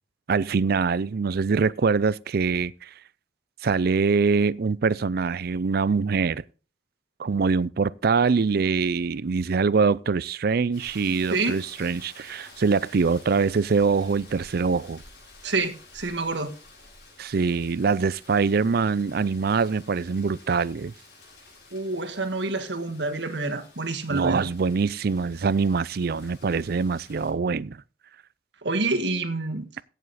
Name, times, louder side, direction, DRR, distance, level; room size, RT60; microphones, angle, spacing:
voice 1, 0.3-2.9 3.6-6.4 7.2-15.0 17.2-20.9 24.1-27.8, right 5 dB, 60° right, 0.5 m, -24 dB
Rain, 10.7-27.3, left 3 dB, 65° left, 6.9 m, -51 dB
voice 2, 15.4-16.5 21.7-24.5 28.6-29.7, right 3 dB, 75° right, 1.6 m, -28 dB
16.0 x 7.2 x 4.1 m
head